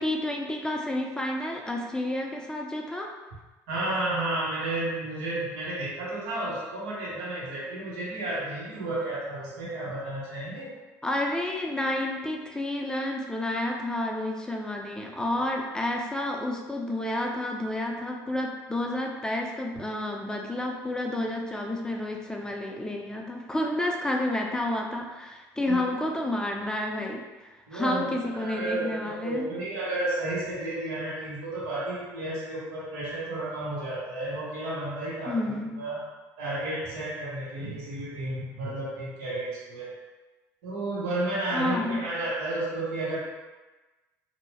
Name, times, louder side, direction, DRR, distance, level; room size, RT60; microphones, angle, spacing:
voice 1, 0.0-3.1 11.0-29.5 35.3-35.8 41.5-42.0, left 1 dB, 10° left, 1 dB, 0.4 m, -30 dB
voice 2, 3.7-10.8 25.7-25.8 27.7-36.0 36.4-39.9 40.6-43.2, right 2 dB, 90° right, -6 dB, 0.9 m, -32 dB
2.7 x 2.0 x 2.9 m, 1.2 s
supercardioid pair, 85°, 8 cm